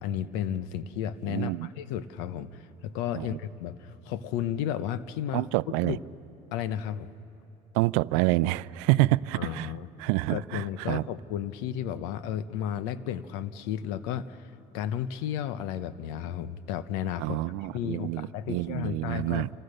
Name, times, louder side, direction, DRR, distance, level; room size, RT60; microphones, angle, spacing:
voice 1, 0.0-5.4 5.8-6.0 6.5-7.1 9.3-9.9 10.3-17.4 17.7-19.5, left 10 dB, 85° left, 1.0 m, -33 dB
voice 2, 1.2-1.7 3.1-3.4 5.3-6.0 7.7-9.7 10.0-11.0 17.2-19.5, right 19 dB, 85° right, 0.5 m, -27 dB
28.0 x 25.5 x 6.7 m
supercardioid pair, 105°, 16 cm